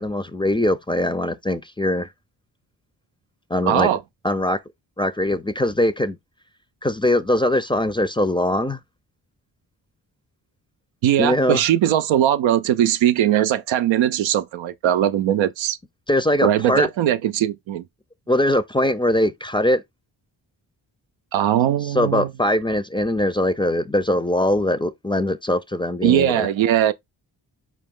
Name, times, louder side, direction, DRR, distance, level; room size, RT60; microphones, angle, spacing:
voice 1, 0.0-2.1 3.5-3.9 4.2-4.6 5.0-6.2 6.8-8.8 11.2-11.6 16.1-16.9 18.3-19.8 21.9-26.5, left 1 dB, 10° left, 0.4 m, -21 dB
voice 2, 3.7-4.0 11.0-15.8 16.4-17.8 21.3-22.3 26.0-26.9, right 11 dB, 90° right, 0.5 m, -20 dB
4.4 x 2.9 x 3.6 m
cardioid pair, 55°, 45 cm